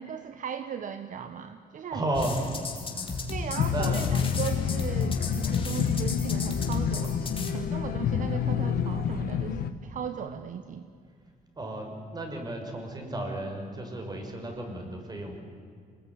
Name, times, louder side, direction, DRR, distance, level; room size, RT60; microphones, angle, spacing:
voice 1, 0.0-2.0 3.3-7.3 7.5-10.9, right 8 dB, 60° right, 9 dB, 1.2 m, -37 dB
voice 2, 1.9-3.3 3.6-4.1 11.6-15.4, right 1 dB, 25° right, 3 dB, 6.0 m, -34 dB
sound 1, 2.1-7.5, left 3 dB, 35° left, 3.8 m, -34 dB
sound 2, 3.6-9.7, left 8 dB, 85° left, 1.5 m, -28 dB
26.5 x 20.5 x 9.8 m, 2.2 s
cardioid pair, 115°, 15 cm